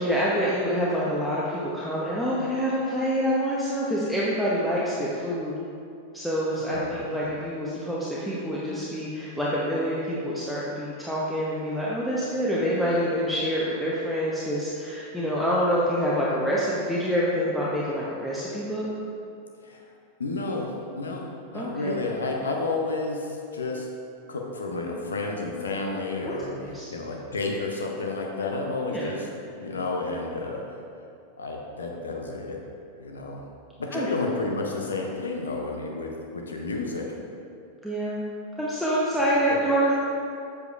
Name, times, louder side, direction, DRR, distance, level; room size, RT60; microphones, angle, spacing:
voice 1, 0.0-5.5 6.1-18.9 21.5-22.0 26.2-26.9 28.9-29.1 33.9-34.1 37.8-38.2 38.6-40.0, equal, ahead, -8 dB, 0.9 m, -26 dB
voice 2, 6.7-7.1 19.6-19.8 20.2-23.9 24.3-26.5 26.9-29.3 29.6-30.6 31.4-32.6 33.0-33.4 33.8-37.1 39.5-39.6, left 3 dB, 70° left, 1 dB, 0.7 m, -31 dB
7.9 x 6.9 x 2.4 m, 2.5 s
figure-of-eight pair, 90°, 0 cm